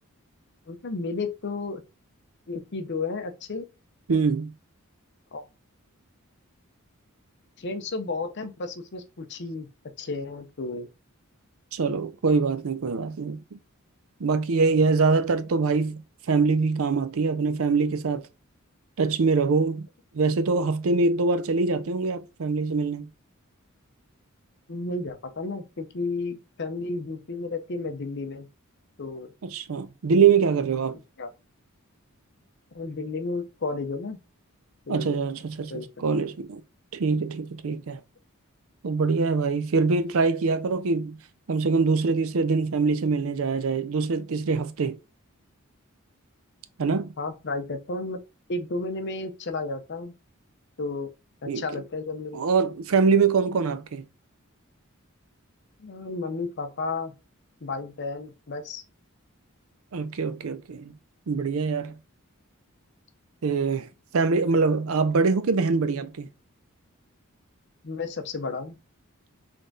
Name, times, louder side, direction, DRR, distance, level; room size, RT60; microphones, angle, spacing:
voice 1, 0.7-1.8 2.5-3.6 5.3-5.4 7.6-9.7 10.0-10.9 24.7-28.5 29.0-29.3 31.2-31.3 32.7-34.2 34.9-35.2 35.7-35.9 47.2-48.2 48.5-50.1 50.8-51.1 51.4-52.4 55.8-57.1 57.6-58.8 67.8-68.8, left 3 dB, 55° left, 0.7 m, -32 dB
voice 2, 4.1-4.5 11.7-13.6 14.2-16.0 16.3-18.3 19.0-19.9 20.1-23.1 29.4-31.0 34.9-36.6 36.9-38.0 38.8-41.2 41.5-45.0 46.8-47.1 51.5-51.6 52.3-54.0 59.9-60.9 61.3-61.9 63.4-63.9 64.1-66.3, right 4 dB, 70° right, 0.5 m, -24 dB
3.8 x 3.4 x 3.9 m
head